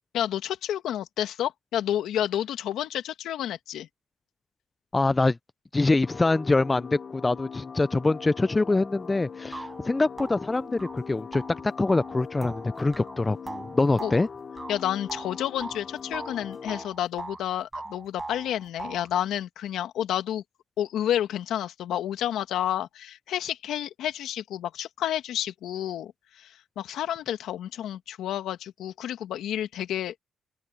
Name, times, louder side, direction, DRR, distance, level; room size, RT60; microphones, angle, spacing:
voice 1, 0.1-3.9 14.0-14.1 14.7-20.4 20.8-30.2, left 11 dB, 80° left, 1.9 m, -30 dB
voice 2, 4.9-5.4 5.7-14.3, left 3 dB, 15° left, 0.3 m, -24 dB
sound 1, 6.0-16.9, left 6 dB, 35° left, 0.9 m, -41 dB
sound 2, 8.9-9.0 9.5-15.8 16.1-17.4 17.7-19.1, right 2 dB, 15° right, 7.6 m, -40 dB
open air
cardioid pair, 135°, 0 cm